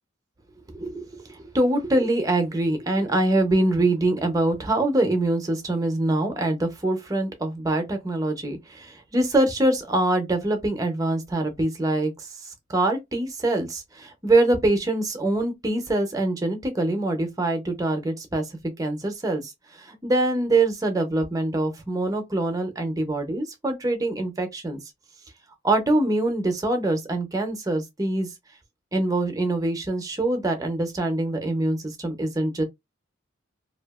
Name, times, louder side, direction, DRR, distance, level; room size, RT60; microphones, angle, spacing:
voice 1, 0.7-18.5 18.8-24.8 25.6-28.3 28.9-32.6, right 2 dB, 15° right, 0.6 m, -24 dB
2.7 x 2.4 x 2.3 m
head